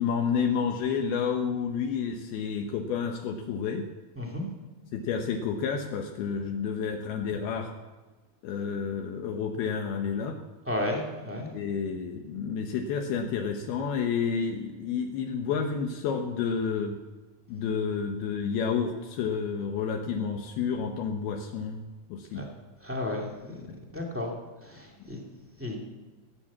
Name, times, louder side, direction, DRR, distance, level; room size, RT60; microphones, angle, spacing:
voice 1, 0.0-3.9 4.9-7.7 8.4-10.4 11.5-17.0 17.5-21.8 22.1-22.5 23.6-23.8, left 6 dB, 75° left, 3 dB, 2.8 m, -30 dB
voice 2, 4.1-4.5 10.7-11.5 22.3-22.4 22.8-23.6 23.9-24.3 24.6-25.2 25.6-25.8, left 1 dB, 5° right, -1 dB, 1.1 m, -33 dB
16.5 x 8.9 x 7.3 m, 1.3 s
omnidirectional pair, 4.6 m